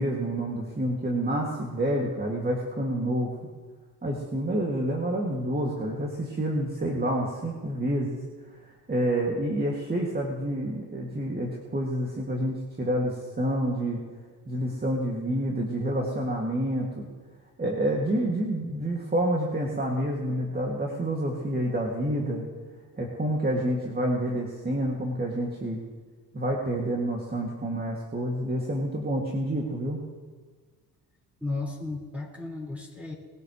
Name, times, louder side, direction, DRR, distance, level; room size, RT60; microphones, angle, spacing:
voice 1, 0.0-3.3 4.0-8.2 8.9-14.0 14.5-17.1 17.6-22.4 23.0-25.8 26.3-30.0, right 1 dB, 25° right, -2 dB, 2.5 m, -28 dB
voice 2, 31.4-33.1, left 3 dB, 5° right, -2 dB, 5.1 m, -34 dB
21.5 x 16.0 x 3.3 m, 1.4 s
cardioid pair, 85°, 37 cm